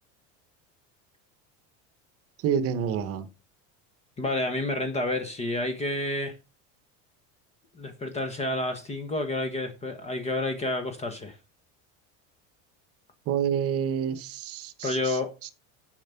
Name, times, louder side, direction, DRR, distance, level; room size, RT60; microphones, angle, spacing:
voice 1, 2.4-3.3 13.3-15.2, right 8 dB, 40° right, 1.0 m, -28 dB
voice 2, 4.2-6.3 7.8-11.4 14.8-15.3, left 2 dB, 20° left, 1.1 m, -29 dB
7.2 x 6.6 x 5.7 m
cardioid pair, 160°, 35 cm